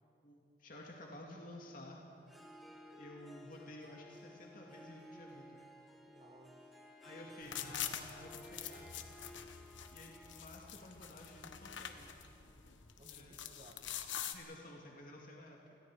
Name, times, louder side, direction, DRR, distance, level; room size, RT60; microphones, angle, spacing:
voice 1, 0.2-2.0 3.0-5.6 7.0-8.9 9.9-12.1 13.1-13.4 14.2-15.8, left 1 dB, 50° left, -1 dB, 2.3 m, -53 dB
Harp, 2.3-14.1, equal, ahead, 1.9 m, -57 dB
voice 2, 6.1-6.8 13.0-14.0, right 1 dB, 35° right, -1 dB, 1.9 m, -62 dB
sound 1, 7.4-14.3, left 9 dB, 85° left, 1.2 m, -45 dB
28.5 x 21.0 x 4.9 m, 2.6 s
head